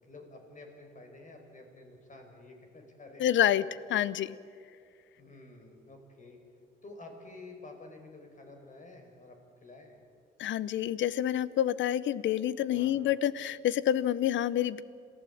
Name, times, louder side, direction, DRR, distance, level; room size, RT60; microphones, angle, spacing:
voice 1, 0.0-3.5 5.2-6.4 6.8-9.4 9.6-10.0 12.7-13.0, left 2 dB, 40° left, 3 dB, 5.3 m, -50 dB
voice 2, 3.2-3.6 3.9-4.4 10.4-14.8, left 11 dB, 70° left, 18 dB, 0.8 m, -28 dB
27.0 x 15.5 x 8.6 m, 2.4 s
cardioid pair, 90°, 20 cm